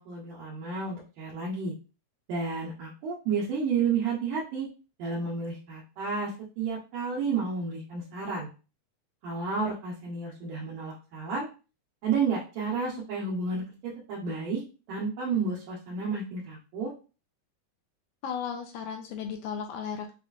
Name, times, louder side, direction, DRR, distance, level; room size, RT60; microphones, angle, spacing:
voice 1, 0.0-1.7 2.3-4.7 5.0-8.5 9.2-11.5 12.0-14.6 14.9-16.9, right 5 dB, 80° right, -5 dB, 2.6 m, -31 dB
voice 2, 18.2-20.1, left 7 dB, 80° left, 5 dB, 1.8 m, -35 dB
6.2 x 2.4 x 2.4 m, 0.32 s
omnidirectional pair, 3.7 m